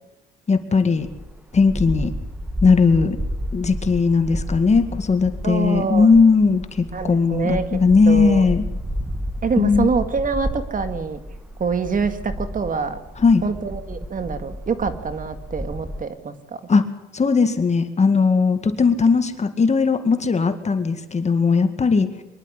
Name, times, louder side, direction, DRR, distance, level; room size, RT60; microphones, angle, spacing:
voice 1, 0.5-1.1 1.5-2.1 2.6-3.2 3.5-8.7 9.6-9.9 13.2-13.4 16.7-16.8 17.1-22.1, left 4 dB, 35° left, 9 dB, 2.1 m, -18 dB
sound 1, 1.0-16.0, equal, 5° right, 1.5 m, -31 dB
voice 2, 5.4-6.1 6.9-8.5 9.4-11.2 11.6-13.0 13.4-16.6, right 5 dB, 45° right, 10 dB, 2.0 m, -25 dB
24.0 x 11.5 x 9.8 m, 0.98 s
cardioid pair, 90°, 20 cm